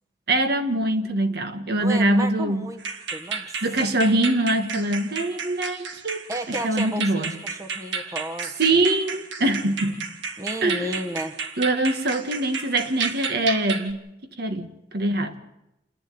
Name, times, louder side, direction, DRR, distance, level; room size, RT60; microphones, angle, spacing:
voice 1, 0.3-2.7 3.6-6.2 6.6-7.3 8.6-10.1 10.6-10.9 11.6-14.1 14.4-15.4, right 2 dB, 60° right, 7 dB, 1.7 m, -23 dB
voice 2, 1.7-2.8 3.1-3.9 6.3-8.5 10.4-11.4, right 1 dB, 20° right, 6 dB, 1.2 m, -33 dB
sound 1, 2.8-13.9, right 5 dB, 80° right, 1.8 m, -33 dB
28.5 x 11.0 x 9.3 m, 0.91 s
head